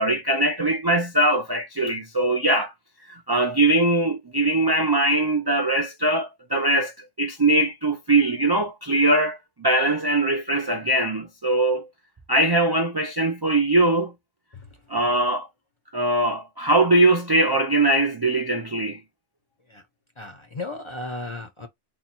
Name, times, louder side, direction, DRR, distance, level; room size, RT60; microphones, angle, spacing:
voice 1, 0.0-2.7 3.1-11.9 12.3-14.1 14.9-15.5 15.9-19.0, right 2 dB, 35° right, 0.3 m, -21 dB
voice 2, 20.2-21.7, left 2 dB, 35° left, 0.6 m, -34 dB
3.6 x 2.2 x 4.2 m
omnidirectional pair, 1.2 m